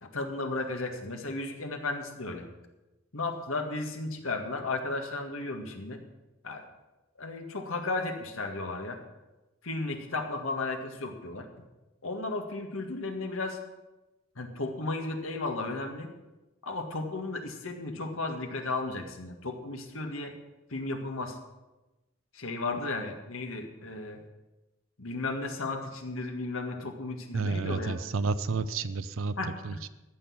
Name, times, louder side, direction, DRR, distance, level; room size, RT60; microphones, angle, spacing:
voice 1, 0.0-2.5 3.1-6.0 6.4-6.6 7.2-9.0 9.6-11.5 12.0-13.6 14.4-16.1 16.6-20.3 20.7-21.4 22.3-24.2 25.0-28.0 29.4-29.8, left 2 dB, 85° left, 4 dB, 1.8 m, -34 dB
voice 2, 27.3-29.3 29.6-29.9, right 4 dB, 85° right, 12 dB, 0.6 m, -30 dB
14.5 x 6.3 x 8.6 m, 1.1 s
head